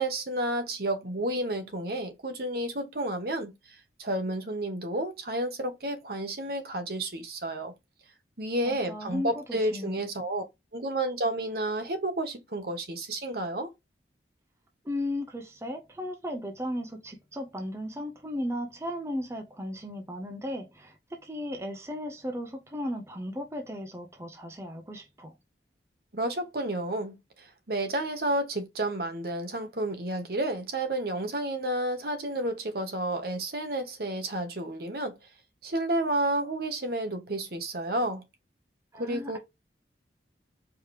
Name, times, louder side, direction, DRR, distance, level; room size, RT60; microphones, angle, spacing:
voice 1, 0.0-3.5 4.0-7.7 8.4-10.4 10.7-13.7 26.1-35.2 35.6-38.2 39.0-39.4, right 1 dB, 55° right, 1.1 m, -31 dB
voice 2, 8.6-10.0 14.8-25.3 38.9-39.4, left 1 dB, 15° right, 0.6 m, -36 dB
4.7 x 3.0 x 3.2 m
head